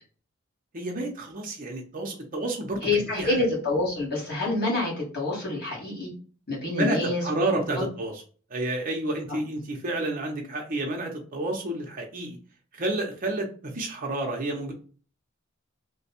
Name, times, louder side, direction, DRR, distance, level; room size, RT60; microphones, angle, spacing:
voice 1, 0.7-2.9 3.2-3.4 6.8-8.2 8.5-12.4 12.7-14.7, right 2 dB, 45° right, 1 dB, 0.6 m, -30 dB
voice 2, 2.8-6.1 6.5-7.2 7.7-7.8, left 2 dB, 50° left, -4 dB, 1.7 m, -27 dB
3.2 x 2.2 x 4.2 m, 0.40 s
head